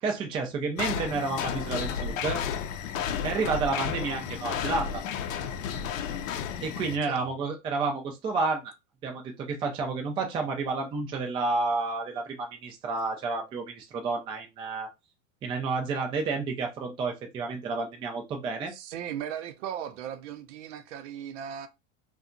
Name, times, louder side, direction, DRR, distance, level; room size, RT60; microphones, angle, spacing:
voice 1, 0.0-2.4 3.2-5.0 6.6-8.7 9.0-14.9 15.4-18.7, right 4 dB, 15° right, 0.3 m, -30 dB
sound 1, 0.8-7.0, left 7 dB, 80° left, 0.5 m, -32 dB
voice 2, 18.7-21.7, right 9 dB, 65° right, 0.6 m, -37 dB
2.7 x 2.2 x 2.5 m
supercardioid pair, 125°, 38 cm